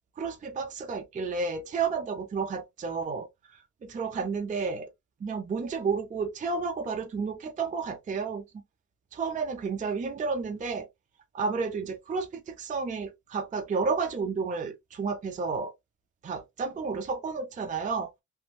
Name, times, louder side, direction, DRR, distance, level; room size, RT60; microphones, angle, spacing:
voice 1, 0.2-4.9 5.2-8.4 9.1-10.9 11.3-15.7 16.2-18.1, right 4 dB, 25° right, 0.5 m, -31 dB
2.5 x 2.1 x 3.0 m
cardioid pair, 90°, 30 cm